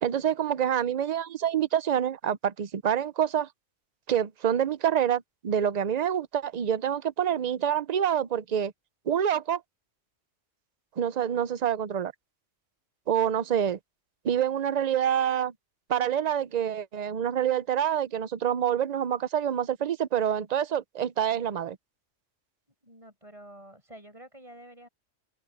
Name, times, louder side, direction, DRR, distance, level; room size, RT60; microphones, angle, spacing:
voice 1, 0.0-3.5 4.1-8.7 9.1-9.6 11.0-12.1 13.1-13.8 14.2-15.5 15.9-21.8, right 9 dB, 45° right, 0.6 m, -27 dB
voice 2, 22.8-24.9, right 1 dB, 25° right, 7.6 m, -49 dB
open air
omnidirectional pair, 1.3 m